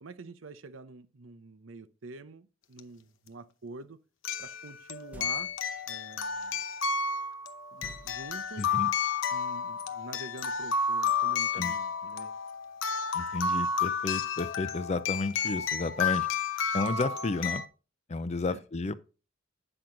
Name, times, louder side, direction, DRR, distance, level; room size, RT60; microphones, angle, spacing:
voice 1, 0.0-4.0 4.4-5.5 5.9-6.6 7.7-8.7 9.3-12.3 18.5-18.6, right 3 dB, 75° right, 0.7 m, -46 dB
sound 1, 2.8-2.9 4.2-17.7, left 5 dB, 75° left, 0.8 m, -31 dB
sound 2, 5.1-5.8 7.8-8.8, equal, 10° right, 0.8 m, -50 dB
voice 2, 8.6-8.9 11.5-11.7 13.1-16.3 16.7-17.6 18.1-19.0, left 3 dB, 35° left, 0.5 m, -32 dB
8.9 x 6.1 x 3.8 m
head